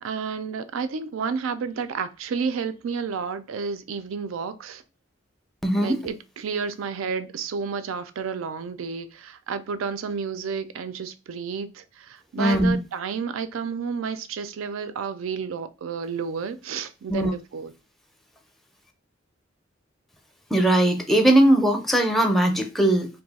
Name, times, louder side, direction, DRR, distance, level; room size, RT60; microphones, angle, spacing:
voice 1, 0.0-4.8 5.7-17.7, right 6 dB, 90° right, 0.4 m, -31 dB
voice 2, 5.6-6.0 12.4-12.7 17.1-17.3 20.5-23.1, right 1 dB, ahead, 0.4 m, -19 dB
2.6 x 2.3 x 4.0 m
head